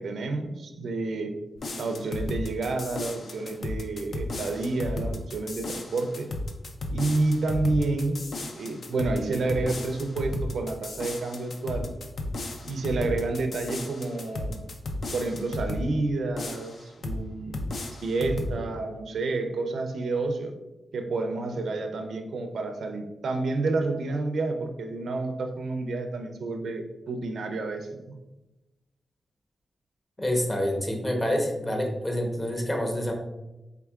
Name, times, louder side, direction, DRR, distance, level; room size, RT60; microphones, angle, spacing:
voice 1, 0.0-1.3 1.8-6.3 6.9-8.2 8.5-11.9 12.6-14.7 15.1-17.7 18.0-20.5 20.9-28.2, right 3 dB, 80° right, 5 dB, 0.5 m, -29 dB
sound 1, 1.6-15.9 16.4-17.2 17.5-18.6, left 2 dB, 65° left, 0.5 m, -34 dB
voice 2, 30.2-33.1, equal, 25° left, 1 dB, 0.9 m, -27 dB
4.5 x 3.5 x 2.3 m, 1.0 s
cardioid pair, 80°, 0 cm